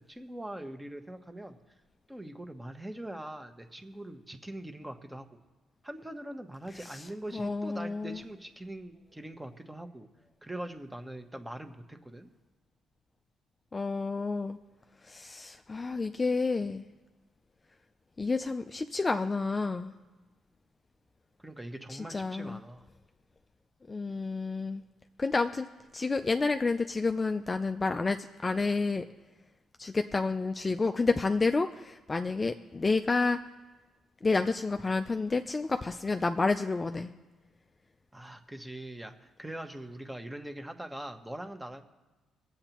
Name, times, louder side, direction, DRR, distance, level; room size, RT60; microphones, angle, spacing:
voice 1, 0.0-1.6 2.1-5.3 5.8-10.1 10.4-12.3 21.4-22.9 38.1-41.8, right 1 dB, 10° right, 6 dB, 1.0 m, -42 dB
voice 2, 7.3-8.2 13.7-14.6 15.0-16.9 18.2-19.9 21.9-22.6 23.9-24.8 25.2-25.7 25.9-29.0 29.8-33.4 34.2-37.1, left 3 dB, 25° left, 7 dB, 0.4 m, -30 dB
22.5 x 8.0 x 3.0 m, 1.2 s
cardioid pair, 90°, 0 cm